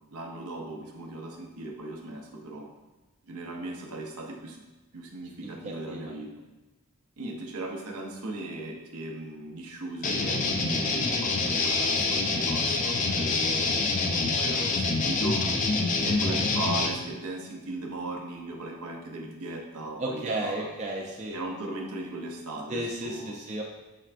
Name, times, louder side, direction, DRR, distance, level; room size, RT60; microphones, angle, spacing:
voice 1, 0.1-2.7 3.3-4.6 4.9-6.3 7.2-15.4 16.0-20.7 21.3-23.4, right 2 dB, 75° right, 0 dB, 0.7 m, -38 dB
voice 2, 5.4-6.1 13.5-13.8 20.0-21.4 22.7-23.6, right 1 dB, 30° right, -2 dB, 0.4 m, -34 dB
sound 1, 10.0-16.9, left 3 dB, 35° left, 0.4 m, -26 dB
5.9 x 3.3 x 2.5 m, 1.1 s
head